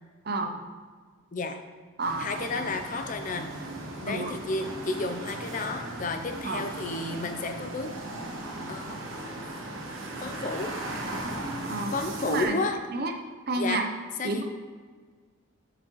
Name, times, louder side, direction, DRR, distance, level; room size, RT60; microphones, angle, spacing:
voice 1, 0.2-0.6 2.0-2.7 4.1-4.4 6.4-6.7 11.6-11.9 12.3-12.6 12.9-13.1 13.5-13.9 14.2-14.4, right 2 dB, 45° right, 4 dB, 0.6 m, -30 dB
sound 1, 2.0-12.4, right 1 dB, 60° right, 1.2 m, -37 dB
voice 2, 2.2-3.5 4.0-7.9 8.7-8.9 10.2-10.7 11.9-12.8 13.6-13.8 14.2-14.4, left 3 dB, 35° left, 7 dB, 0.5 m, -32 dB
7.4 x 6.7 x 3.0 m, 1.5 s
head